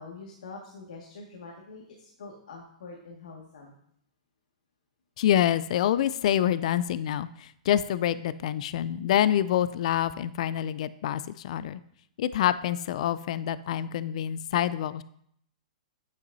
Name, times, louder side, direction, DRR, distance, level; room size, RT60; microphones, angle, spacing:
voice 1, 0.0-3.7, left 3 dB, 85° left, -1 dB, 1.9 m, -45 dB
voice 2, 5.2-11.8 12.2-15.0, left 11 dB, 60° left, 16 dB, 0.4 m, -26 dB
9.6 x 8.2 x 2.7 m, 0.67 s
hypercardioid pair, 145°, 4 cm